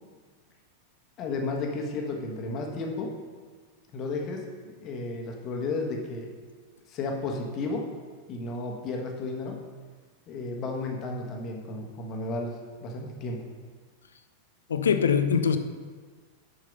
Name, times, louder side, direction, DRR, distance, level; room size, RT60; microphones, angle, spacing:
voice 1, 1.2-3.1 3.9-6.3 6.9-7.9 8.3-9.6 10.3-13.5, left 3 dB, 35° left, 1 dB, 1.4 m, -33 dB
voice 2, 14.7-15.6, left 7 dB, 70° left, 9 dB, 0.6 m, -22 dB
7.7 x 6.5 x 5.3 m, 1.5 s
figure-of-eight pair, 90°, 0 cm